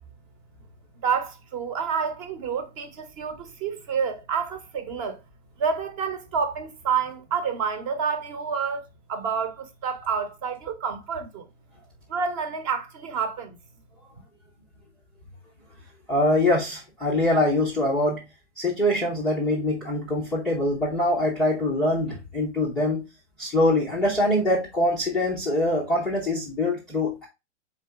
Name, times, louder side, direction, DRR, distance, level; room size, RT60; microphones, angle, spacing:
voice 1, 1.0-5.2 5.6-11.5 12.1-13.6, right 6 dB, 30° right, 0.8 m, -29 dB
voice 2, 16.1-18.2 18.6-23.1 23.4-27.3, left 1 dB, ahead, 0.4 m, -24 dB
4.1 x 3.9 x 3.3 m
hypercardioid pair, 145°, 35 cm